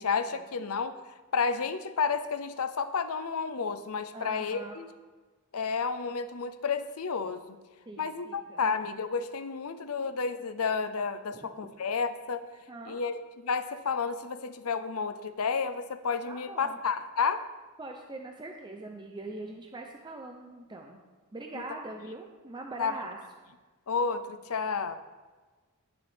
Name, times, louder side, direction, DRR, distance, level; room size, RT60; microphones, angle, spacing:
voice 1, 0.0-4.9 5.5-7.6 8.0-12.4 12.9-17.4 21.5-21.6 22.8-23.0 23.9-25.0, left 5 dB, 75° left, 11 dB, 0.7 m, -31 dB
voice 2, 4.1-4.8 7.9-8.7 11.3-11.5 12.7-13.0 16.2-16.8 17.8-21.0 21.3-23.2, right 2 dB, 20° right, 2 dB, 0.7 m, -42 dB
18.0 x 6.2 x 3.6 m, 1.3 s
head